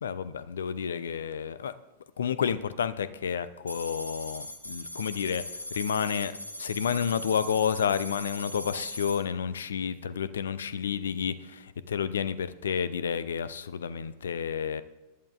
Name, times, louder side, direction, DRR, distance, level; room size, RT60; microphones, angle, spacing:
voice 1, 0.0-1.7 2.2-5.4 5.7-14.8, left 7 dB, 65° left, 16 dB, 0.6 m, -30 dB
sound 1, 3.7-9.2, equal, 80° left, 1.3 m, -40 dB
23.5 x 11.5 x 2.4 m, 1.0 s
figure-of-eight pair, 90°, 0 cm